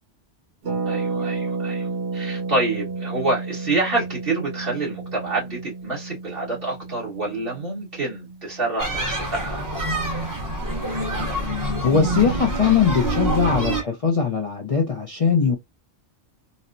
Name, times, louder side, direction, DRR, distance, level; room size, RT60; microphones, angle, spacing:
Harp, 0.6-10.3 10.5-10.6 10.8-11.1, right 4 dB, 85° right, 1.3 m, -32 dB
voice 1, 0.8-9.6, right 2 dB, 55° right, 1.6 m, -27 dB
sound 1, 8.8-13.8, right 1 dB, 20° right, 0.9 m, -26 dB
voice 2, 11.3-15.5, left 6 dB, 40° left, 0.5 m, -21 dB
4.1 x 2.1 x 2.5 m
omnidirectional pair, 1.2 m